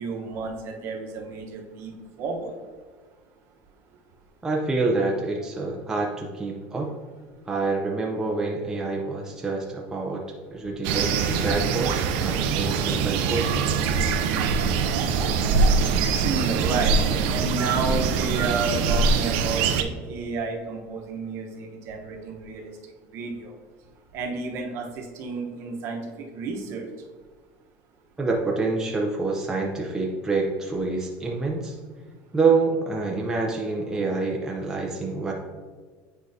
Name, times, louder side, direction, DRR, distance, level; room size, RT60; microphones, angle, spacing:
voice 1, 0.0-2.5 16.2-23.5 24.1-26.9, right 3 dB, 45° right, 2 dB, 1.0 m, -31 dB
voice 2, 4.4-6.9 7.5-10.2 10.5-13.9 28.2-31.7 32.3-35.3, right 3 dB, 10° right, -1 dB, 0.5 m, -27 dB
sound 1, 10.8-19.8, right 5 dB, 75° right, 0.5 m, -23 dB
8.7 x 4.6 x 2.7 m, 1.5 s
cardioid pair, 155°, 6 cm